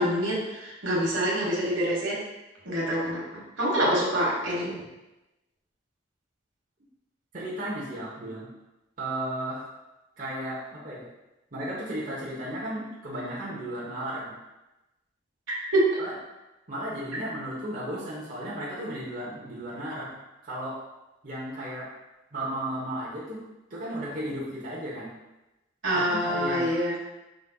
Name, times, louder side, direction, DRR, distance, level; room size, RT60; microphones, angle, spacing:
voice 1, 0.0-2.2 2.6-3.2 3.6-4.7 15.5-15.9 25.8-26.9, equal, 80° right, -4 dB, 1.4 m, -26 dB
voice 2, 7.3-8.5 9.0-9.6 10.2-11.1 11.5-14.3 16.0-16.1 16.7-20.2 20.4-20.8 21.2-21.9 22.3-23.4 23.7-25.1 25.9-26.7, right 1 dB, 45° right, -7 dB, 1.0 m, -34 dB
5.1 x 4.1 x 2.3 m, 1.0 s
head